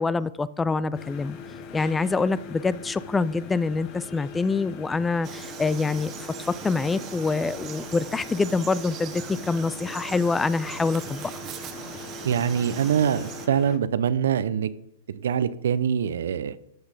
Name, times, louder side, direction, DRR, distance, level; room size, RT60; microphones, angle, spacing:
voice 1, 0.0-1.4 1.7-6.1 6.6-11.3, left 4 dB, 10° left, 19 dB, 0.4 m, -25 dB
sound 1, 0.9-13.8, left 5 dB, 35° left, 1.4 m, -41 dB
Frog, 5.2-13.5, right 8 dB, 30° right, 1.2 m, -40 dB
voice 2, 12.2-14.7 15.1-16.6, right 8 dB, 75° right, 15 dB, 0.7 m, -24 dB
13.5 x 6.4 x 5.2 m, 0.78 s
hypercardioid pair, 135°, 0 cm